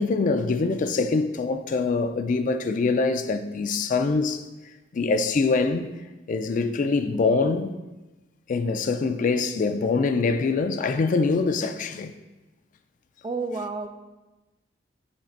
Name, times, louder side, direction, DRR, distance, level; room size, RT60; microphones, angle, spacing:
voice 1, 0.0-4.4 4.9-5.9 6.3-7.7 8.5-12.1, left 4 dB, 45° left, 0.3 m, -24 dB
voice 2, 13.2-13.9, right 3 dB, 25° right, 0.3 m, -30 dB
7.2 x 3.3 x 4.4 m
head